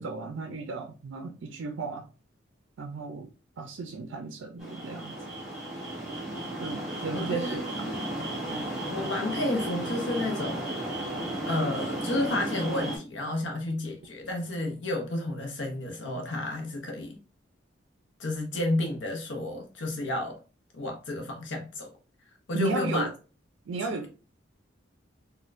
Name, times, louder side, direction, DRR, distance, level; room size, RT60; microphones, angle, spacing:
voice 1, 0.0-2.1 2.8-3.3 3.6-5.1 6.6-7.6 8.5-8.6 22.5-23.1 23.7-24.1, right 4 dB, 80° right, 4 dB, 0.4 m, -34 dB
sound 1, 4.6-13.0, right 1 dB, ahead, 1.1 m, -34 dB
voice 2, 7.1-7.6 8.2-8.3 8.9-10.9 11.5-17.2 18.2-20.4 20.7-21.9 22.5-23.1, left 2 dB, 70° left, 3 dB, 0.6 m, -31 dB
4.1 x 2.2 x 2.4 m, 0.34 s
head